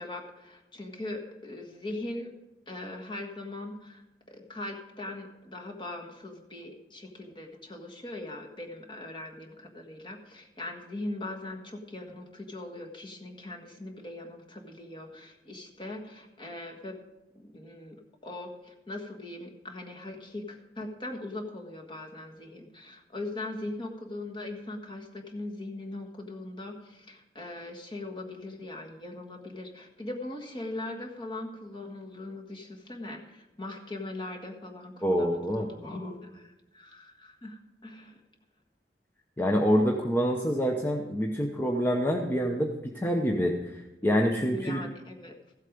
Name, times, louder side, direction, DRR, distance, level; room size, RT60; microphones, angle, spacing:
voice 1, 0.0-2.3 2.7-4.0 4.3-17.0 17.3-38.2 44.5-45.4, left 2 dB, 30° left, 1 dB, 1.6 m, -40 dB
voice 2, 35.0-35.7 39.4-44.8, equal, 15° left, 1 dB, 0.9 m, -26 dB
15.0 x 8.1 x 5.1 m, 0.98 s
head